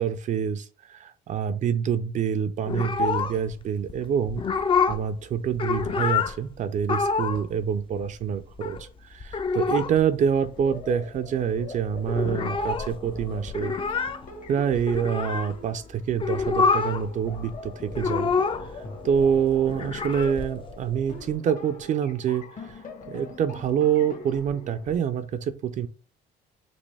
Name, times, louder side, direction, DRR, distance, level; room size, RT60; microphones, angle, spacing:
voice 1, 0.0-4.4 4.9-13.7 14.5-18.3 18.6-22.8 23.1-25.9, right 8 dB, 45° right, 12 dB, 0.4 m, -26 dB
sound 1, 2.7-3.6 3.9-4.0 4.3-5.1 5.4-6.4 6.8-7.5 7.7-7.8 8.0-8.8 9.2-10.0 10.3-10.4 10.6-11.2 11.5-11.6 11.8-15.5 16.1-17.1 17.4-18.8 19.1-21.3, left 5 dB, 30° left, 0.5 m, -27 dB
sound 2, 10.2-25.0, left 2 dB, 50° left, 1.4 m, -42 dB
5.2 x 2.9 x 3.3 m, 0.35 s
cardioid pair, 110°, 17 cm